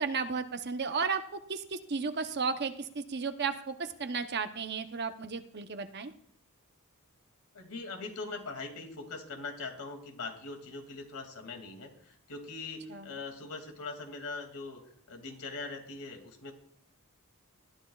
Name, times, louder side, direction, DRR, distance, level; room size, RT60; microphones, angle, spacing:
voice 1, 0.0-6.1 12.9-13.1, right 5 dB, 50° right, 8 dB, 0.8 m, -34 dB
voice 2, 7.5-14.8 15.1-16.5, left 3 dB, 80° left, 4 dB, 2.5 m, -41 dB
20.5 x 13.5 x 2.4 m, 0.66 s
head